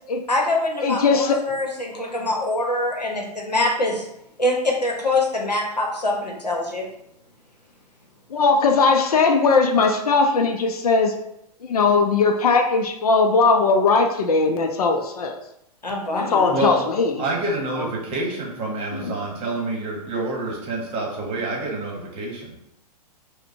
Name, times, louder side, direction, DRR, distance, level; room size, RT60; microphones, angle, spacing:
voice 1, 0.3-4.0 4.4-6.8 15.8-16.5, left 2 dB, 90° left, 0 dB, 0.8 m, -24 dB
voice 2, 0.8-1.5 8.3-11.2 11.6-15.4 16.0-17.2 17.8-17.9 18.9-19.1, left 4 dB, 65° left, 5 dB, 0.5 m, -19 dB
voice 3, 16.5-16.9 17.2-22.5, right 2 dB, 25° right, -2 dB, 1.1 m, -27 dB
4.9 x 2.1 x 2.6 m, 0.80 s
figure-of-eight pair, 105°, 21 cm